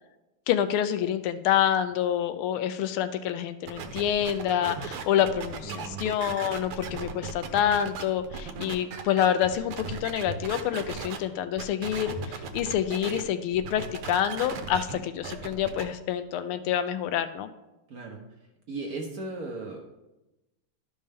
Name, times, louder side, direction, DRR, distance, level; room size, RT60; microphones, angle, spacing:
voice 1, 0.5-17.5, left 10 dB, 80° left, 10 dB, 1.4 m, -27 dB
sound 1, 3.7-11.2 11.6-13.2 13.5-15.8, right 5 dB, 80° right, 1.7 m, -37 dB
voice 2, 5.6-6.1 17.9-18.2 18.7-19.9, right 3 dB, 55° right, 0 dB, 1.2 m, -37 dB
12.0 x 5.4 x 3.5 m, 0.98 s
omnidirectional pair, 2.4 m